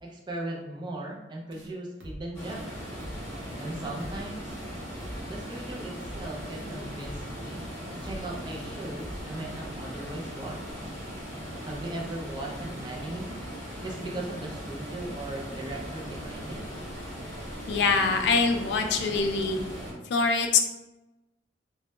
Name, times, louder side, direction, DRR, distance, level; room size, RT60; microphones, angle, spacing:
voice 1, 0.0-2.7 3.6-4.6 5.2-7.6 7.9-10.9 11.6-13.3 13.8-16.6, right 2 dB, 25° right, -1 dB, 0.4 m, -38 dB
sound 1, 1.5-1.7 2.0-2.2 2.5-2.7 3.0-3.2 3.5-3.7 4.0-4.2 4.5-4.7 5.0-5.2 5.5-5.7 6.0-6.2 6.5-6.7 7.0-7.2 7.5-7.7 8.0-8.2 8.5-8.7 9.0-9.2, equal, 80° right, 0.5 m, -43 dB
sound 2, 2.3-19.9, equal, 10° left, 0.9 m, -39 dB
voice 2, 17.7-19.6 20.1-20.6, left 4 dB, 65° left, 5 dB, 0.3 m, -24 dB
2.1 x 2.1 x 2.9 m, 1.0 s
head